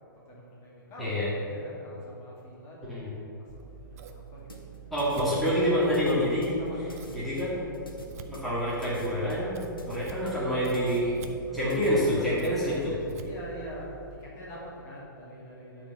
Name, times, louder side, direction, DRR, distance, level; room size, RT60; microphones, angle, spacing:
voice 1, 0.3-3.0 3.4-4.6 5.1-5.4 6.6-6.9 11.5-13.9 14.2-15.9, equal, 25° left, -5 dB, 2.3 m, -43 dB
Scissors, 3.5-14.2, right 8 dB, 45° right, 0.7 m, -47 dB
sound 1, 4.5-11.9, left 2 dB, 80° left, 1.5 m, -46 dB
voice 2, 4.9-6.5 7.1-7.6 8.3-9.6 9.9-11.1 11.5-12.0 12.2-12.9, equal, ahead, -10 dB, 2.1 m, -27 dB
10.0 x 4.4 x 7.1 m, 2.7 s
figure-of-eight pair, 115°, 11 cm